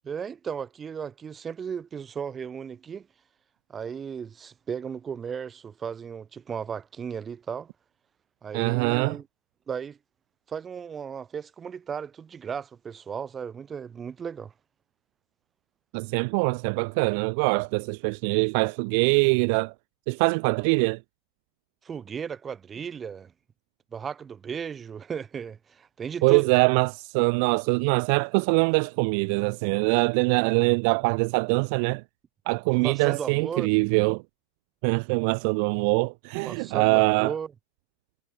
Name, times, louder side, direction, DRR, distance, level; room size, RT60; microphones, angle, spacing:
voice 1, 0.0-3.1 3.7-7.7 8.4-9.3 9.7-10.0 10.5-14.5 21.8-23.3 23.9-26.5 32.8-33.7 36.4-37.5, right 7 dB, 20° right, 1.8 m, -35 dB
voice 2, 8.5-9.2 15.9-19.7 20.1-21.0 26.2-32.0 32.5-34.2 34.8-37.3, right 34 dB, 45° right, 0.5 m, -23 dB
figure-of-eight pair, 90°, 0 cm